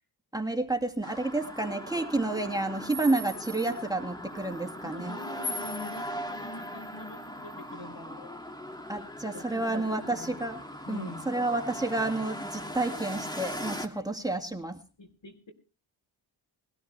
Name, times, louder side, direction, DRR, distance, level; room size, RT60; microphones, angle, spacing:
voice 1, 0.3-5.2 8.9-10.6 10.9-14.8, right 2 dB, 10° right, 4 dB, 2.1 m, -30 dB
sound 1, 1.0-13.9, left 1 dB, 10° left, 2.2 m, -39 dB
voice 2, 4.8-8.4 9.3-10.4 10.9-11.3 13.9-14.1 15.0-15.5, left 2 dB, 70° left, 7 dB, 4.4 m, -44 dB
20.5 x 13.0 x 3.4 m, 0.33 s
cardioid pair, 55°, 46 cm